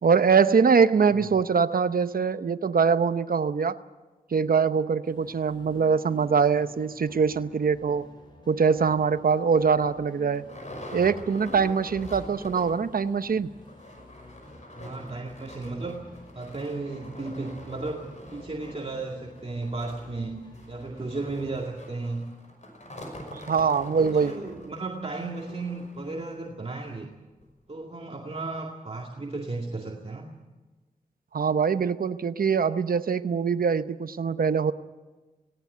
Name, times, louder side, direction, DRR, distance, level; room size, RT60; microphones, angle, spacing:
voice 1, 0.0-3.8 4.3-8.1 8.5-10.4 10.9-13.5 23.3-24.3 31.3-34.7, right 5 dB, 75° right, 12 dB, 0.8 m, -23 dB
sound 1, 5.0-21.5, left 1 dB, 30° left, 7.1 m, -51 dB
sound 2, 9.0-9.2 9.7-9.8 10.0-12.9 13.2-13.3 13.6-26.4 26.9-27.0 27.4-27.5, left 1 dB, 50° left, 5.8 m, -44 dB
voice 2, 14.7-16.0 16.3-22.3 24.0-27.1 27.7-30.3, right 3 dB, 40° right, 0 dB, 2.2 m, -34 dB
18.5 x 17.5 x 9.3 m, 1.2 s
wide cardioid pair, 70°, 15 cm